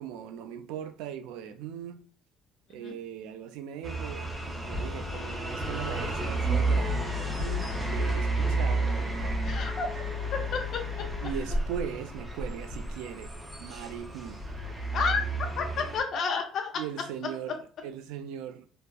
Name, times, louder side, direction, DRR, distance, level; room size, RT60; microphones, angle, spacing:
voice 1, 0.0-2.0 2.7-9.2 11.2-13.3 13.6-14.4 16.8-18.7, right 9 dB, 85° right, 0.3 m, -39 dB
sound 1, 3.8-16.0, right 1 dB, 10° right, 0.5 m, -31 dB
voice 2, 9.4-9.9 10.5-10.6 14.9-15.2 15.6-16.8, left 5 dB, 45° left, 0.5 m, -30 dB
3.3 x 2.0 x 2.2 m
cardioid pair, 165°, 0 cm